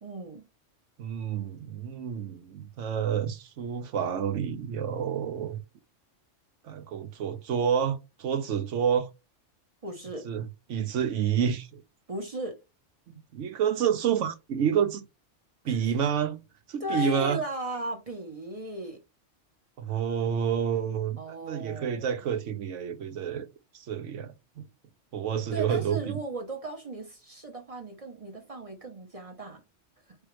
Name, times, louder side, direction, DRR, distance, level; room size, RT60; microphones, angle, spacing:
voice 1, 0.0-0.4 9.8-10.3 12.1-12.6 15.6-15.8 16.8-19.0 21.2-22.2 25.5-29.6, right 1 dB, 30° right, 0.8 m, -36 dB
voice 2, 1.0-5.6 6.6-9.1 10.2-11.8 13.1-15.0 15.6-16.4 16.7-17.4 19.8-23.5 23.7-24.6 25.1-26.2, right 8 dB, 75° right, 1.0 m, -29 dB
4.6 x 3.4 x 3.1 m
omnidirectional pair, 1.3 m